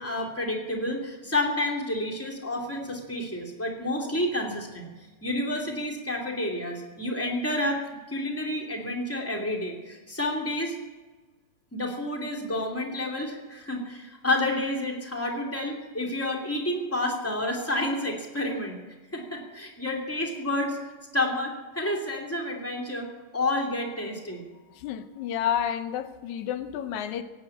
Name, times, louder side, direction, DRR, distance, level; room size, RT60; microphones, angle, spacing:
voice 1, 0.0-4.9 5.2-10.7 11.7-18.8 19.1-20.8 21.1-23.1 23.3-24.4, left 1 dB, 5° left, 1 dB, 2.4 m, -30 dB
voice 2, 24.8-27.2, left 9 dB, 85° left, 10 dB, 2.2 m, -30 dB
17.5 x 9.0 x 8.6 m, 1.3 s
omnidirectional pair, 3.3 m